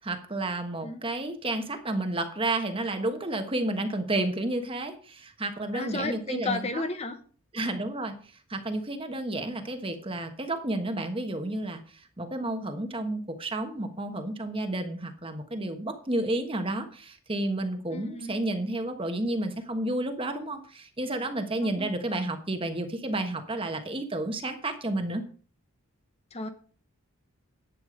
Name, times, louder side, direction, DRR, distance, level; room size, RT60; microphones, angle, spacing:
voice 1, 0.0-6.8 7.5-25.2, right 1 dB, 25° right, 7 dB, 1.2 m, -31 dB
voice 2, 5.7-7.2 17.9-18.4 21.6-21.9 26.3-26.5, left 3 dB, 30° left, 8 dB, 0.9 m, -33 dB
11.0 x 8.4 x 5.1 m, 0.42 s
head